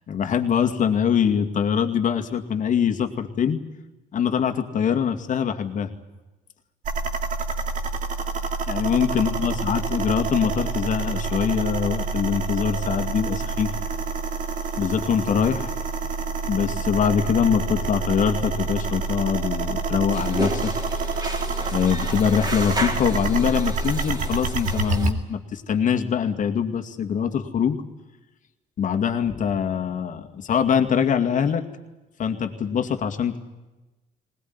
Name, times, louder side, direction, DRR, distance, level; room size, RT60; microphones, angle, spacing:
voice 1, 0.1-3.6 4.1-5.9 8.7-13.7 14.8-15.7 16.5-20.7 21.7-27.8 28.8-31.6 32.2-33.4, left 7 dB, 50° left, 6 dB, 2.3 m, -23 dB
sound 1, 6.8-25.1, right 4 dB, 50° right, 2.3 m, -28 dB
sound 2, 20.1-25.1, right 1 dB, 25° right, 4.1 m, -32 dB
20.0 x 20.0 x 9.7 m, 1.1 s
cardioid pair, 110°, 17 cm